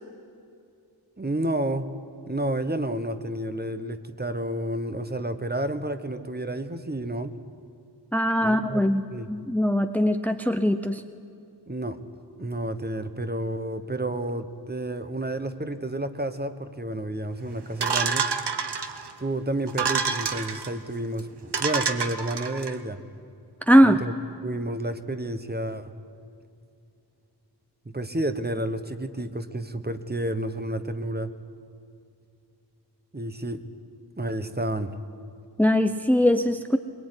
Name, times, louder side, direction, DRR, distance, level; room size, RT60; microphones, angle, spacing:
voice 1, 1.2-1.9 2.3-7.4 8.4-9.3 11.7-12.0 12.4-18.3 19.2-23.0 23.8-24.1 24.4-25.9 27.9-31.3 33.1-33.6 34.2-34.9, right 1 dB, 25° right, 10 dB, 1.2 m, -30 dB
voice 2, 8.1-11.0 23.7-24.0 35.6-36.8, equal, 5° left, 8 dB, 0.8 m, -21 dB
sound 1, 17.8-19.1 19.7-20.7 21.2-21.3 21.5-22.7, right 5 dB, 80° right, 1.3 m, -27 dB
22.0 x 21.0 x 9.8 m, 2.5 s
wide cardioid pair, 75°, 40 cm